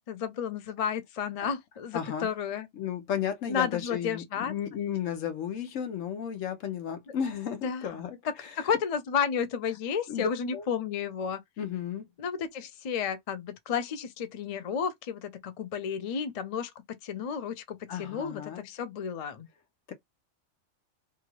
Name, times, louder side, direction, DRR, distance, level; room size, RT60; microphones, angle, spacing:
voice 1, 0.1-2.7 3.5-4.5 7.6-7.8 8.3-11.4 12.2-16.7 17.0-19.5, left 7 dB, 50° left, 0.4 m, -32 dB
voice 2, 1.9-2.3 2.7-8.7 10.1-10.7 11.6-12.1 17.9-18.7 19.9-20.0, left 8 dB, 85° left, 1.1 m, -34 dB
2.8 x 2.4 x 2.9 m
omnidirectional pair, 1.3 m